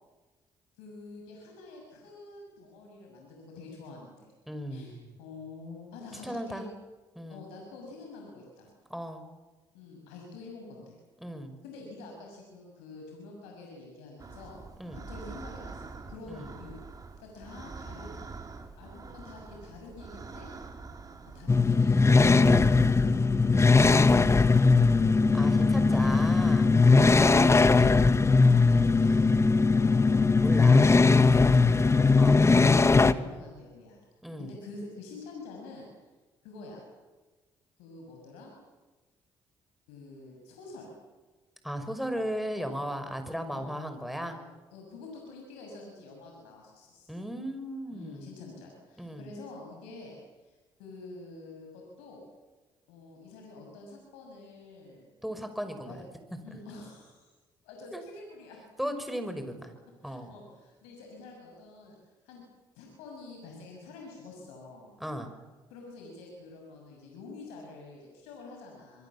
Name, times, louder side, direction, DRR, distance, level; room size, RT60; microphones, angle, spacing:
voice 1, 0.8-4.3 4.7-6.6 7.3-8.7 9.7-11.0 11.6-14.6 14.9-16.8 17.2-18.4 18.8-20.5 21.3-24.9 28.4-30.2 31.3-32.0 32.5-34.0 34.4-35.9 36.4-36.9 37.8-38.5 39.9-40.9 42.6-42.9 43.5-43.7 44.1-44.4 44.7-47.1 47.9-52.2 52.9-55.1 55.8-56.0 56.4-57.3 57.6-58.6 60.0-61.9 62.2-62.4 62.7-64.9 65.7-69.1, left 3 dB, 90° left, 0 dB, 6.5 m, -47 dB
voice 2, 4.5-5.0 6.2-6.7 7.2-7.4 8.9-9.2 11.2-11.5 14.8-15.0 16.3-16.5 25.3-26.7 27.2-27.9 30.4-30.8 31.2-31.4 32.2-32.4 34.2-34.5 41.6-44.4 47.1-48.3 49.0-49.3 55.2-56.0 56.5-56.6 57.9-58.0 58.8-59.7 60.0-60.3 65.0-65.4, equal, ahead, 7 dB, 5.7 m, -36 dB
sound 1, 14.2-21.8, right 4 dB, 35° right, 4.6 m, -45 dB
sound 2, 21.5-33.1, left 4 dB, 25° left, 1.5 m, -20 dB
27.0 x 23.5 x 7.4 m, 1.2 s
supercardioid pair, 60°, 10 cm